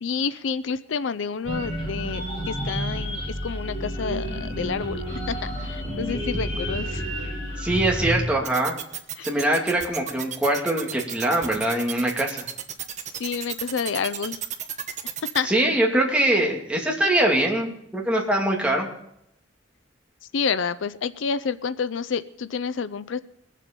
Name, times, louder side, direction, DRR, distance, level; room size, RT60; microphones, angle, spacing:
voice 1, 0.0-5.4 5.6-7.0 9.2-9.3 13.2-14.4 15.3-15.5 20.3-23.2, left 6 dB, 80° left, 15 dB, 0.5 m, -29 dB
sound 1, 1.4-8.2, equal, 25° left, 7.0 m, -30 dB
voice 2, 7.6-8.7 9.2-12.4 15.4-18.9, right 1 dB, 5° right, -2 dB, 2.4 m, -23 dB
sound 2, 8.4-15.4, right 9 dB, 40° right, 1.1 m, -33 dB
21.5 x 7.5 x 5.3 m, 0.75 s
head